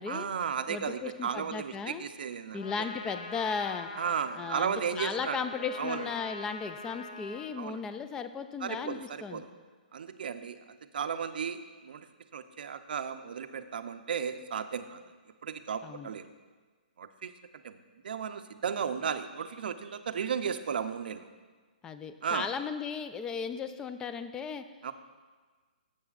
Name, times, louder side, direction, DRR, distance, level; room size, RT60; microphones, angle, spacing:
voice 1, 0.1-2.6 4.0-5.4 5.8-6.1 7.6-7.8 8.6-9.5 9.9-12.1 12.3-15.1 15.4-16.3 17.0-17.3 17.6-21.3 22.2-22.5 24.8-24.9, right 7 dB, 70° right, 10 dB, 0.5 m, -34 dB
voice 2, 0.7-2.1 2.5-3.9 4.4-9.4 15.8-16.1 21.8-24.6, left 5 dB, 10° left, 10 dB, 0.3 m, -36 dB
Trumpet, 2.6-7.6, left 3 dB, 45° left, 0.9 m, -44 dB
12.5 x 7.7 x 2.4 m, 1.4 s
hypercardioid pair, 155°, 5 cm